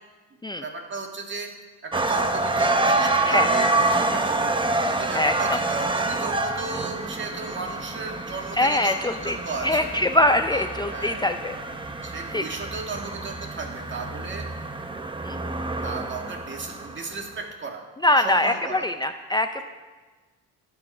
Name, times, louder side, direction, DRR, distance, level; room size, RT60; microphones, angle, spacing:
voice 1, 0.6-1.5 1.8-4.6 4.9-9.9 10.5-11.3 12.0-14.5 15.8-17.8 18.2-18.9 19.6-19.7, right 4 dB, 40° right, 2 dB, 1.9 m, -35 dB
sound 1, 1.9-17.2, right 2 dB, 15° right, 0.9 m, -27 dB
voice 2, 5.1-5.6 8.5-9.4 9.6-11.6 12.3-12.4 15.2-15.4 18.0-19.6, left 1 dB, 15° left, 7 dB, 0.5 m, -23 dB
12.0 x 8.7 x 5.5 m, 1.3 s
cardioid pair, 90°, 30 cm